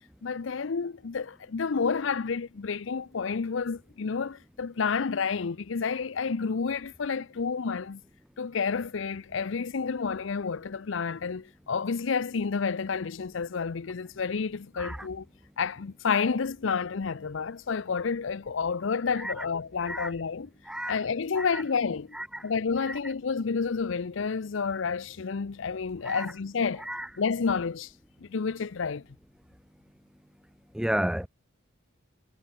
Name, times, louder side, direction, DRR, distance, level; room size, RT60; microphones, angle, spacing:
voice 1, 0.2-8.0 8.4-15.2 15.6-20.5 20.9-22.2 22.4-26.9 27.2-27.9 28.2-29.1, left 5 dB, 70° left, 0.6 m, -30 dB
voice 2, 20.7-21.0 21.3-21.6 22.1-22.5 22.9-23.0 26.0-26.3 26.8-27.1 30.7-31.3, right 1 dB, 5° right, 0.4 m, -32 dB
head